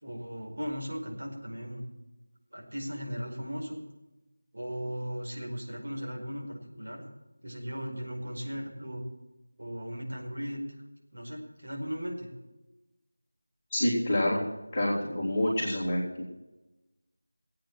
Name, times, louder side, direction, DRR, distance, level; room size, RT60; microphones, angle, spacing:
voice 1, 0.0-1.9 2.5-3.8 4.5-7.0 7.4-9.0 9.6-10.6 11.1-12.3, equal, 85° right, -1 dB, 5.1 m, -37 dB
voice 2, 13.7-14.4 14.7-16.2, left 1 dB, 10° left, -10 dB, 2.3 m, -27 dB
15.5 x 8.7 x 7.5 m, 1.0 s
figure-of-eight pair, 180°, 0 cm